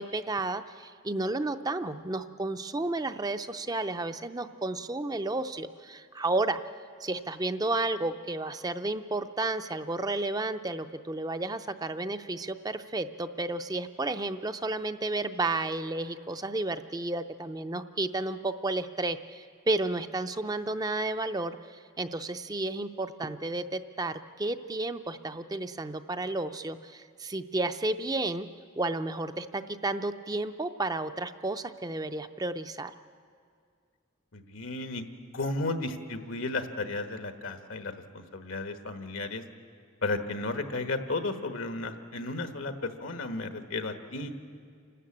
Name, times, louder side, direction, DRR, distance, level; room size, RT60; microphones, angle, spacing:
voice 1, 0.0-6.6 7.0-21.6 22.0-28.5 28.8-32.9, right 2 dB, 20° right, 10 dB, 0.5 m, -32 dB
voice 2, 34.3-35.0 35.3-39.4 40.0-44.3, left 2 dB, 75° left, 8 dB, 1.3 m, -34 dB
28.5 x 12.5 x 8.6 m, 2.2 s
head